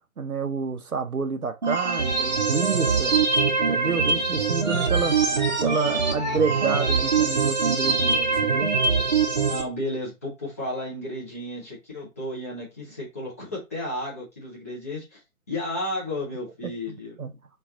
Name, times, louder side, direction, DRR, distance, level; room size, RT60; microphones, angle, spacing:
voice 1, 0.2-3.1 3.7-5.2 5.6-8.7 16.6-17.3, right 5 dB, 85° right, 0.8 m, -29 dB
sound 1, 1.6-9.6, right 4 dB, 30° right, 0.7 m, -23 dB
voice 2, 9.4-15.2 15.5-17.1, left 1 dB, 10° left, 0.6 m, -33 dB
3.2 x 2.5 x 3.7 m
figure-of-eight pair, 140°, 42 cm